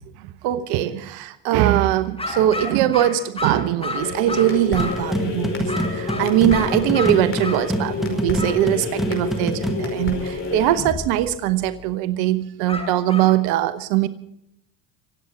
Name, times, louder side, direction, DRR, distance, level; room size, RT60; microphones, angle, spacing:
voice 1, 0.4-14.1, right 12 dB, 70° right, 13 dB, 1.0 m, -21 dB
sound 1, 2.2-5.1 5.7-7.6 8.4-8.6 12.7-13.3, left 2 dB, 15° left, 6.8 m, -31 dB
sound 2, 4.0-11.9, left 3 dB, 35° left, 5.1 m, -29 dB
sound 3, 4.8-9.9, equal, ahead, 1.8 m, -27 dB
25.0 x 8.8 x 5.9 m, 0.78 s
hypercardioid pair, 80°, 38 cm